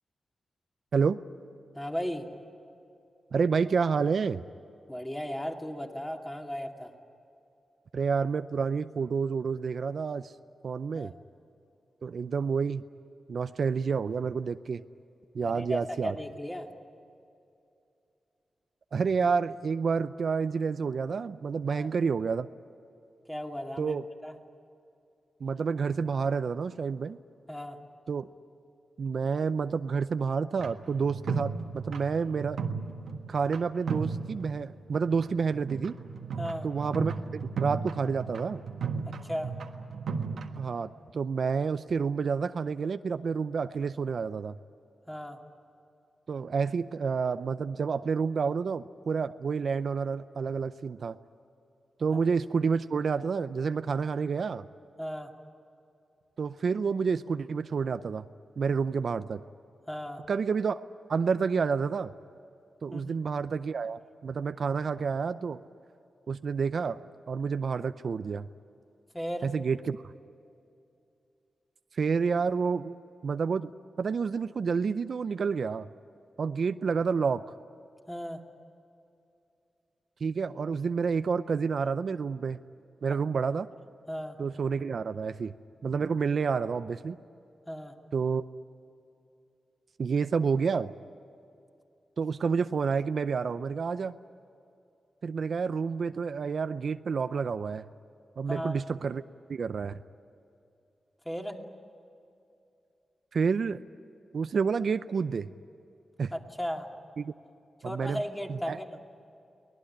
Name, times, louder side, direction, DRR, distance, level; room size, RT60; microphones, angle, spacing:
voice 1, 1.7-2.3 4.9-6.9 10.9-11.2 15.4-16.7 21.7-21.9 23.3-24.0 24.2-24.4 27.5-27.8 36.4-36.7 39.2-39.5 45.1-45.4 55.0-55.3 59.9-60.2 62.9-63.1 69.1-69.5 78.1-78.4 83.1-83.2 84.1-84.4 87.7-87.9 98.5-98.8 101.2-101.6 106.3-106.9 107.8-109.0, equal, 10° left, 2 dB, 2.5 m, -36 dB
voice 2, 3.3-4.4 7.9-10.3 10.6-11.1 12.0-12.8 13.3-14.8 15.3-16.2 18.9-22.5 23.8-24.0 25.4-27.2 28.1-28.3 29.0-32.6 33.3-36.0 36.6-38.6 40.6-44.5 46.3-51.2 52.0-54.7 56.4-58.3 58.6-59.4 60.3-60.8 61.1-62.1 62.8-65.6 66.3-67.0 67.3-68.5 69.4-70.0 71.9-72.9 73.2-73.7 74.0-75.9 76.4-77.4 80.2-82.6 83.0-83.7 84.4-85.5 85.8-87.2 88.1-88.5 90.0-90.9 92.2-94.1 95.2-97.8 98.4-99.2 99.5-100.0 103.3-103.8 104.3-105.5 106.2-106.3 107.2-107.3 107.8-108.2 108.5-108.8, right 5 dB, 65° right, 12 dB, 0.6 m, -29 dB
sound 1, 30.6-33.6 33.9-34.7 35.1-40.6, right 5 dB, 90° right, 1.5 m, -35 dB
24.0 x 19.0 x 10.0 m, 2.6 s
wide cardioid pair, 90°, 0 cm